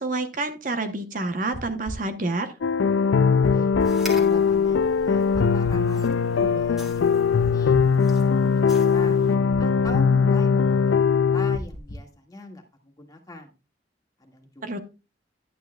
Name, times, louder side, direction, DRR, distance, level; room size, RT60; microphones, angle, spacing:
voice 1, 0.0-2.5 14.6-14.8, right 2 dB, 45° right, 8 dB, 0.8 m, -28 dB
sound 1, 1.5-2.0 3.4-3.9 5.3-5.8 7.4-8.0 9.5-10.0 11.5-12.1, equal, 40° left, 1.1 m, -35 dB
sound 2, 2.6-11.6, left 6 dB, 75° left, 0.4 m, -20 dB
voice 2, 3.1-3.7 4.1-7.8 8.2-9.2 9.6-13.5 14.2-14.8, left 1 dB, 20° left, 2 dB, 1.8 m, -40 dB
sound 3, 3.8-9.4, equal, ahead, 1.7 m, -43 dB
11.0 x 9.1 x 2.3 m, 0.28 s
head